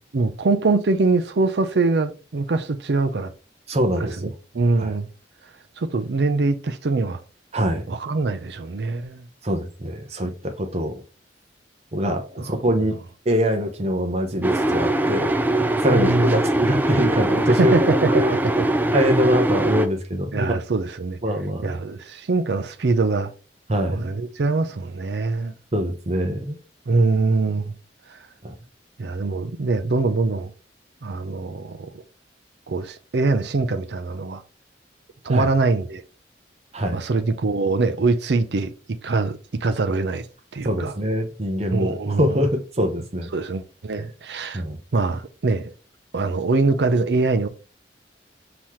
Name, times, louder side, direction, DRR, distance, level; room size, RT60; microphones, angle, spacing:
voice 1, 0.0-3.3 4.2-5.1 5.8-7.2 7.9-9.3 15.9-16.4 17.5-18.7 20.3-21.2 21.6-23.3 23.9-25.5 26.9-27.7 29.0-30.5 31.0-32.0 32.7-34.4 35.2-36.0 36.9-38.7 39.0-40.3 40.5-40.9 41.7-42.4 43.3-44.6 44.9-45.7 46.1-47.5, right 3 dB, 65° right, 0.5 m, -23 dB
voice 2, 3.7-4.3 4.8-4.9 7.5-7.9 9.4-10.9 11.9-13.0 13.2-17.7 18.1-18.3 18.9-20.6 21.2-21.8 23.7-24.1 25.7-26.6 28.4-28.5 35.3-35.5 36.7-37.0 40.6-43.3 44.0-44.1 44.5-44.8, equal, 35° right, 0.8 m, -23 dB
sound 1, 14.4-19.9, right 1 dB, 10° right, 0.3 m, -22 dB
5.5 x 2.9 x 3.1 m
head